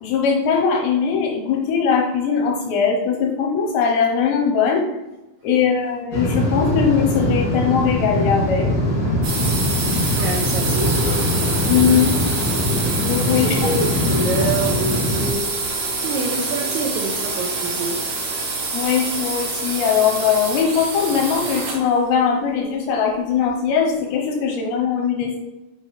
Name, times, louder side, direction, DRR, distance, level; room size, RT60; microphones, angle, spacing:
voice 1, 0.0-4.8 5.4-8.7 11.6-12.1 13.0-13.7 18.7-25.4, left 6 dB, 80° left, 1 dB, 2.7 m, -20 dB
sound 1, 6.1-15.3, left 1 dB, 40° left, 2.2 m, -22 dB
sound 2, 9.2-21.9, right 3 dB, 70° right, 1.6 m, -26 dB
voice 2, 10.1-11.2 13.3-18.0, right 2 dB, 85° right, -2 dB, 2.2 m, -27 dB
6.7 x 5.7 x 3.1 m, 1.0 s
omnidirectional pair, 5.6 m